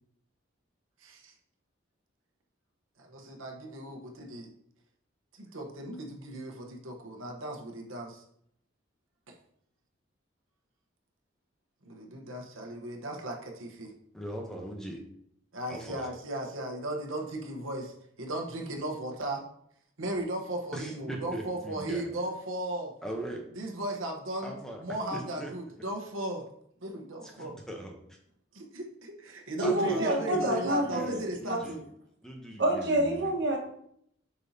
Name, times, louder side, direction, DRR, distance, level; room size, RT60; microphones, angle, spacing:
voice 1, 1.0-1.3 3.0-4.5 5.3-8.2 11.8-13.9 15.5-19.4 20.0-22.9 23.6-24.5 24.8-26.5 26.8-27.5 28.5-31.8, right 1 dB, 85° right, 1 dB, 1.1 m, -36 dB
voice 2, 14.1-15.0 15.7-16.1 20.7-22.1 23.0-23.4 24.4-24.8 25.1-25.5 27.2-27.9 29.6-31.8 32.2-33.3, right 1 dB, 5° left, 0 dB, 0.8 m, -40 dB
voice 3, 29.6-31.1 31.4-31.6 32.6-33.6, right 1 dB, 55° right, 0 dB, 1.4 m, -27 dB
7.1 x 5.5 x 2.8 m, 0.70 s
head